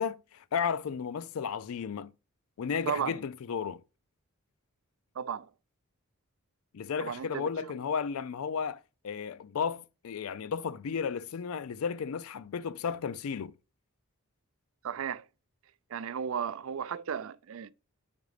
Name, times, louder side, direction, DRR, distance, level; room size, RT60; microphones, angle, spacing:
voice 1, 0.0-2.1 2.6-3.8 6.7-13.5, left 6 dB, 75° left, 0.4 m, -34 dB
voice 2, 2.9-3.2 5.2-5.5 7.0-7.5 14.8-15.2 15.9-17.7, right 7 dB, 65° right, 0.4 m, -34 dB
5.3 x 4.8 x 4.8 m
head